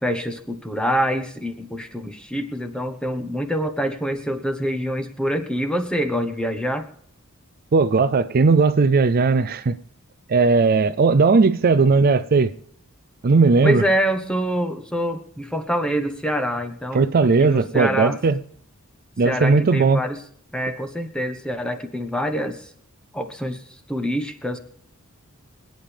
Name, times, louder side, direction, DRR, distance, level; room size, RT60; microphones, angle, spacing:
voice 1, 0.0-6.9 13.6-17.1 17.4-18.2 19.2-20.2 20.5-22.7 23.1-23.6 23.9-24.6, equal, 5° left, 7 dB, 1.2 m, -25 dB
voice 2, 7.7-9.8 10.3-12.5 13.2-13.8 16.9-18.4 19.2-20.0, right 4 dB, 45° right, 13 dB, 0.4 m, -17 dB
26.0 x 9.1 x 3.5 m, 0.66 s
head